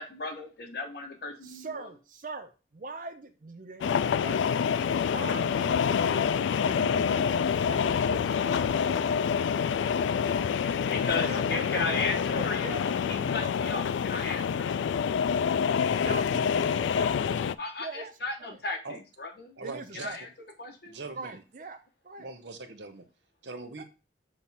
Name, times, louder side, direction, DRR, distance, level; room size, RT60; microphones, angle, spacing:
voice 1, 0.0-1.9 10.9-14.8 17.6-19.6 19.9-20.3 20.6-21.0, left 3 dB, 60° left, 3 dB, 1.1 m, -35 dB
voice 2, 1.4-4.6 5.0-9.3 11.1-13.8 16.0-17.1 17.4-18.1 18.4-18.6 19.6-20.2 21.1-22.3 23.8-23.9, right 3 dB, 45° right, 9 dB, 0.5 m, -42 dB
sound 1, 3.8-17.5, left 7 dB, 90° left, 0.3 m, -27 dB
voice 3, 19.6-20.2 20.8-21.4 22.2-23.0 23.4-23.8, right 3 dB, 75° right, 8 dB, 0.9 m, -41 dB
7.1 x 3.2 x 4.2 m, 0.31 s
head